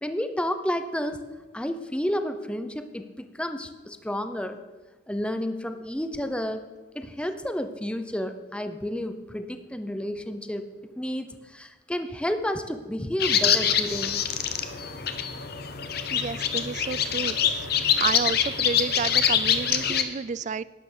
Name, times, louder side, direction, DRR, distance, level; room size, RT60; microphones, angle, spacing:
voice 1, 0.0-1.2 1.5-4.6 5.1-6.6 6.9-10.7 11.0-14.2, equal, 5° left, 8 dB, 0.7 m, -31 dB
sound 1, 13.2-20.0, left 8 dB, 55° left, 1.0 m, -25 dB
voice 2, 16.1-17.4 18.0-20.6, right 5 dB, 40° right, 19 dB, 0.4 m, -30 dB
12.0 x 9.3 x 6.6 m, 1.3 s
head